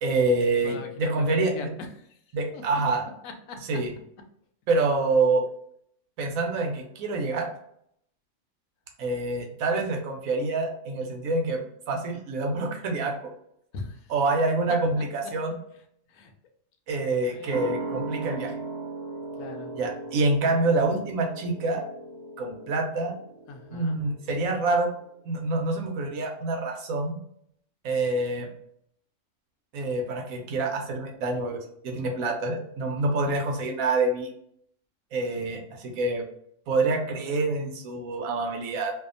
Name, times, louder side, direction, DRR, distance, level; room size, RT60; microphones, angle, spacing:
voice 1, 0.0-1.5 2.3-3.1 3.7-3.9 4.7-5.4 6.2-7.5 9.0-11.6 11.9-13.3 14.1-15.6 16.9-18.5 19.7-21.8 22.4-23.1 23.7-24.9 25.2-27.2 27.8-28.5 29.7-34.3 35.1-36.2 36.7-38.9, right 3 dB, 90° right, 2 dB, 1.1 m, -26 dB
voice 2, 0.6-2.1 2.5-2.6 3.2-3.6 13.7-14.4 16.1-16.3 17.3-17.7 19.4-19.7 23.5-24.0 33.0-33.1, left 4 dB, 80° left, 4 dB, 0.9 m, -41 dB
sound 1, 17.5-24.6 24.9-25.0, right 3 dB, 70° right, 1.1 m, -38 dB
2.7 x 2.3 x 2.4 m, 0.70 s
omnidirectional pair, 1.4 m